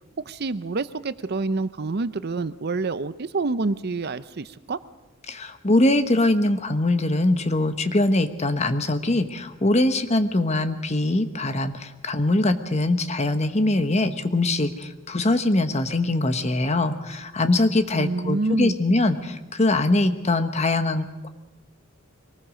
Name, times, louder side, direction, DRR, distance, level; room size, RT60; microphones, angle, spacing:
voice 1, 0.3-4.8 17.9-18.8, right 3 dB, 50° right, 14 dB, 0.6 m, -27 dB
voice 2, 5.3-21.3, left 2 dB, 30° left, 9 dB, 1.1 m, -22 dB
23.0 x 19.5 x 6.4 m, 1.1 s
head